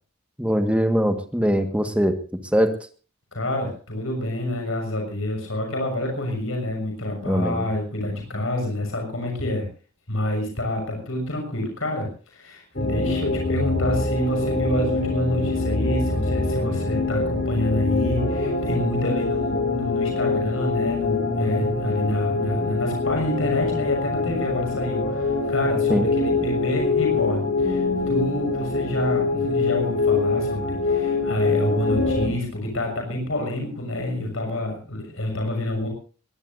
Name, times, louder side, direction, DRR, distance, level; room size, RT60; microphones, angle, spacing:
voice 1, 0.4-2.2 2.5-2.7 7.2-7.7 25.9-26.1, equal, 5° right, 7 dB, 1.6 m, -21 dB
voice 2, 3.3-9.7 10.1-35.9, left 1 dB, 65° left, 2 dB, 6.6 m, -27 dB
sound 1, 12.8-32.3, left 3 dB, 50° left, 3.7 m, -24 dB
22.5 x 20.0 x 2.7 m, 0.38 s
head